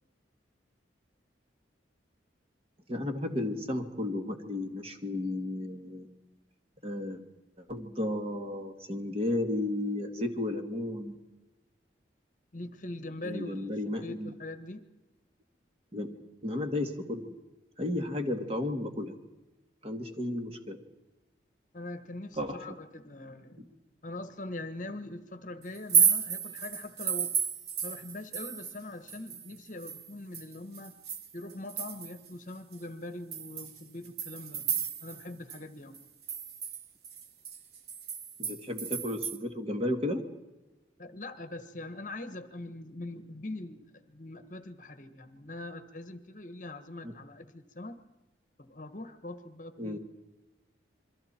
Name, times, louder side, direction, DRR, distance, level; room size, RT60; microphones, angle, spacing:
voice 1, 2.9-6.1 6.8-7.2 7.6-11.2 13.2-14.3 15.9-16.1 16.4-17.3 17.8-19.1 19.8-20.8 22.4-22.8 38.4-40.2 47.0-47.1 49.8-50.0, left 1 dB, 30° right, 5 dB, 2.1 m, -33 dB
voice 2, 12.5-14.8 21.7-23.7 24.0-27.3 27.8-31.0 31.3-36.0 41.0-48.0 48.6-50.0, left 2 dB, 45° left, 9 dB, 1.4 m, -42 dB
sound 1, 25.7-28.8 29.1-32.3 32.7-32.8 33.3-35.2 35.5-35.6 35.9-39.4, right 7 dB, 55° right, 1.7 m, -32 dB
27.5 x 23.0 x 4.5 m, 1.1 s
head